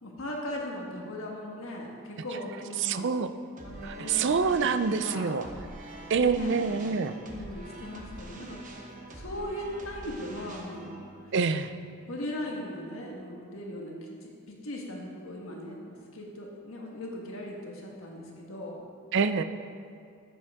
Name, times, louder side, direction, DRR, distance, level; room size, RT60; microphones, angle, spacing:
voice 1, 0.0-3.1 3.6-4.3 4.6-4.7 5.0-5.4 6.3-6.6 7.2-8.7 9.1-11.0 12.1-18.8, left 1 dB, 65° left, -1 dB, 1.4 m, -38 dB
voice 2, 2.8-3.3 3.8-5.5 6.1-7.2 11.3-11.7 19.1-19.4, right 5 dB, 55° right, 10 dB, 0.4 m, -26 dB
sound 1, 3.6-12.7, right 1 dB, 35° right, 1.0 m, -45 dB
14.0 x 7.2 x 3.6 m, 2.4 s
head